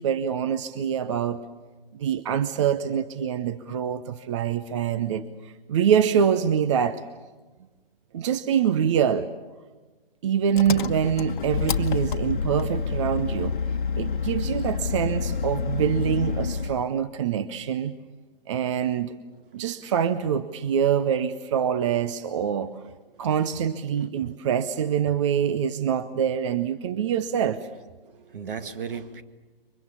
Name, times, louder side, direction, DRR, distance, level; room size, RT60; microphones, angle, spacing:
voice 1, 0.0-1.4 1.9-7.0 8.1-9.3 10.2-13.6 14.0-17.9 18.5-19.1 19.5-22.8 23.2-27.6, right 8 dB, 30° right, 13 dB, 0.8 m, -25 dB
Engine, 10.5-16.8, left 5 dB, 55° left, 1.3 m, -28 dB
voice 2, 19.2-19.9 22.5-22.8 23.1-23.6 23.9-24.5 24.8-25.5 26.9-27.3 28.0-29.2, right 6 dB, 65° right, 10 dB, 2.1 m, -41 dB
28.0 x 24.0 x 7.2 m, 1.2 s
figure-of-eight pair, 140°, 30 cm